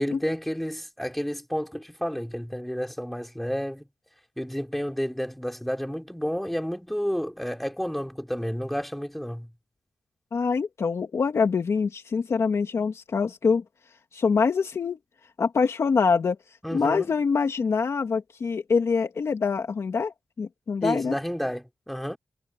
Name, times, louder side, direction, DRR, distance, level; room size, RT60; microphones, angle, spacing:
voice 1, 0.0-3.8 4.4-9.5 16.6-17.1 20.8-22.2, equal, ahead, 4.7 m, -30 dB
voice 2, 10.3-13.6 14.1-15.0 15.4-16.4 16.7-21.2, left 5 dB, 55° left, 2.1 m, -25 dB
wide cardioid pair, 140°, 6 cm